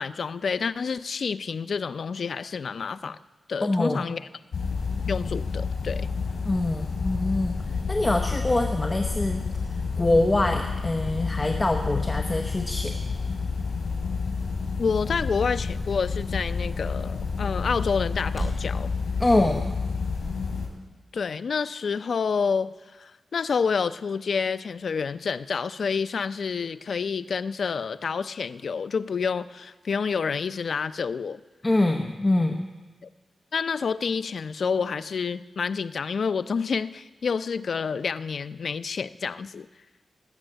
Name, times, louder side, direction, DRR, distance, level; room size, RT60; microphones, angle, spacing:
voice 1, 0.0-3.2 3.5-4.2 5.1-6.1 14.8-18.9 21.1-31.4 33.5-39.7, left 5 dB, 60° left, 12 dB, 0.4 m, -28 dB
voice 2, 3.6-4.0 6.5-7.6 7.9-9.5 10.0-12.9 19.2-19.8 31.6-32.7, left 2 dB, 20° left, 4 dB, 0.8 m, -24 dB
sound 1, 4.5-20.7, left 4 dB, 90° left, 3.4 m, -29 dB
sound 2, 12.5-18.7, right 2 dB, 20° right, 3.2 m, -44 dB
19.0 x 7.2 x 7.8 m, 1.2 s
wide cardioid pair, 160°, 0 cm